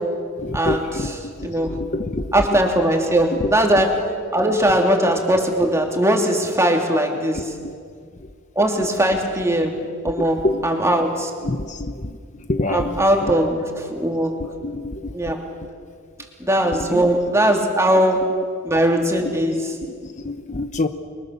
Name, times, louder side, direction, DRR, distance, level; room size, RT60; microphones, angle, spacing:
voice 1, 0.4-2.6 3.3-3.8 4.7-4.9 7.1-7.7 8.2-8.3 10.2-10.8 11.4-13.7 14.2-15.4 16.7-17.0 17.4-17.5 17.9-18.4 19.8-20.9, left 2 dB, 35° left, 7 dB, 1.0 m, -28 dB
voice 2, 1.4-1.7 2.3-3.9 4.3-7.4 8.5-11.3 12.7-13.6 14.0-14.3 15.1-15.4 16.4-18.2 18.7-19.6, right 1 dB, 15° right, 2 dB, 3.1 m, -19 dB
29.5 x 24.0 x 7.1 m, 2.1 s
head